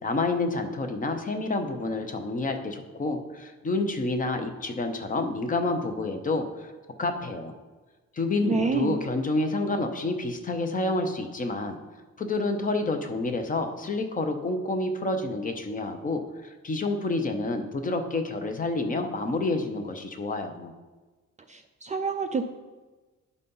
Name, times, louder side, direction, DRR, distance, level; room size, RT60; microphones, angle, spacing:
voice 1, 0.0-6.7 7.0-7.5 8.1-11.8 12.2-20.7, left 2 dB, 25° left, 6 dB, 0.8 m, -29 dB
voice 2, 8.5-9.0 21.5-22.5, right 4 dB, 25° right, 4 dB, 0.4 m, -28 dB
11.0 x 4.2 x 5.4 m, 1.3 s
cardioid pair, 150°, 30 cm